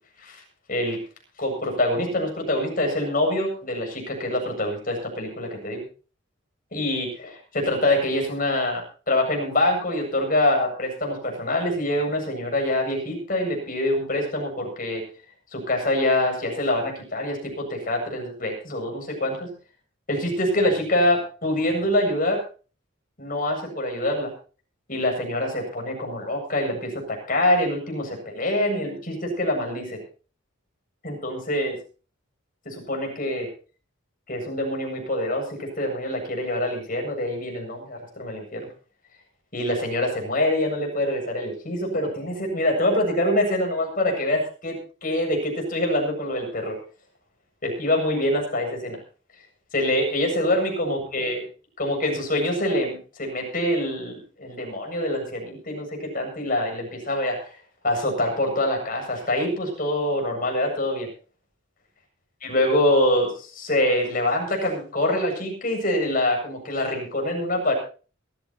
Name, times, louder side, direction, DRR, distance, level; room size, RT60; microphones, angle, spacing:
voice 1, 1.4-5.8 6.7-15.0 15.5-19.5 20.1-22.4 23.2-24.3 24.9-30.0 31.0-31.8 32.6-33.5 34.3-38.7 39.5-46.8 47.6-49.0 49.7-51.4 51.8-57.5 57.8-61.1 62.4-67.7, left 1 dB, 40° left, 2 dB, 7.8 m, -25 dB
22.5 x 14.0 x 3.1 m, 0.38 s
head